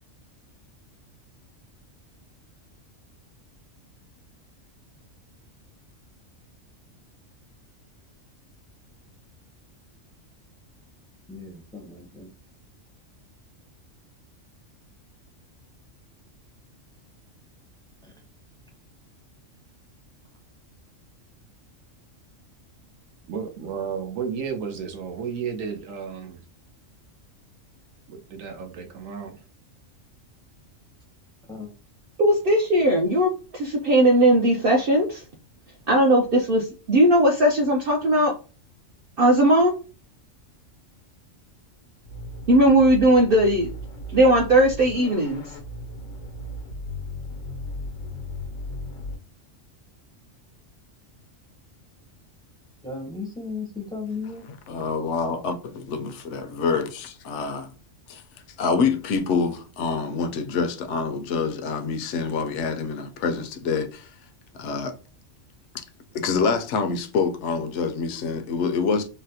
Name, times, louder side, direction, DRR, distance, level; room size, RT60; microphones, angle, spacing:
voice 1, 11.3-12.3 18.0-18.1 31.5-31.7 52.8-54.5, left 4 dB, 5° left, 0.5 m, -35 dB
voice 2, 23.3-26.4 28.1-29.4, right 6 dB, 90° right, 1.1 m, -33 dB
voice 3, 32.2-35.2 35.9-38.3 39.2-39.7 42.5-43.7 44.1-45.6, right 1 dB, 55° right, 0.7 m, -18 dB
sound 1, 42.0-49.1, left 1 dB, 85° left, 1.2 m, -36 dB
voice 4, 54.7-57.7 58.1-58.2 58.6-64.1 64.5-64.9 65.7-65.8 66.1-69.1, left 5 dB, 70° left, 0.9 m, -26 dB
4.0 x 2.1 x 2.7 m
omnidirectional pair, 1.3 m